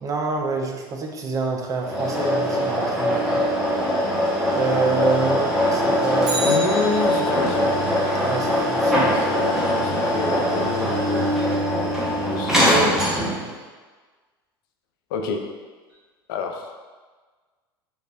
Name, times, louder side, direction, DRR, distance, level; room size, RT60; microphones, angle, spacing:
voice 1, 0.0-3.4 4.5-6.6 8.2-9.1, right 3 dB, 25° right, 2 dB, 0.4 m, -27 dB
sound 1, 1.8-13.5, equal, 5° right, 0.7 m, -22 dB
Bicycle, 6.2-7.6 15.9-16.0, right 2 dB, 55° right, 1.1 m, -31 dB
voice 2, 6.4-7.7 9.1-11.2 12.3-13.1 15.1-15.4 16.3-16.8, left 4 dB, 60° left, 3 dB, 0.4 m, -28 dB
3.6 x 2.0 x 2.3 m, 1.4 s
figure-of-eight pair, 75°, 13 cm